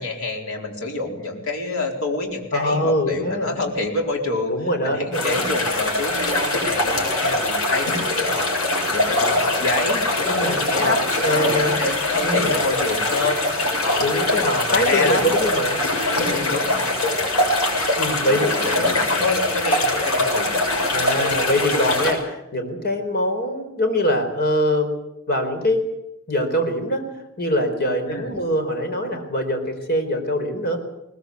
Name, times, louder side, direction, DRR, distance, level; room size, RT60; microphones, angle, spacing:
voice 1, 0.0-4.5 4.8-11.0 11.3-13.4 13.8-14.1 14.5-15.2 16.1-17.2 18.2-20.6 28.1-28.4, left 2 dB, 70° left, 2 dB, 4.5 m, -27 dB
voice 2, 2.5-3.6 4.5-5.5 10.2-11.8 12.2-12.5 14.0-15.8 18.0-18.5 20.9-24.9 25.3-25.9 26.3-27.1 27.4-30.8, left 1 dB, 50° left, 5 dB, 4.2 m, -23 dB
sound 1, 5.1-22.1, left 2 dB, 90° left, 7.4 m, -22 dB
21.0 x 20.0 x 8.4 m, 0.89 s
head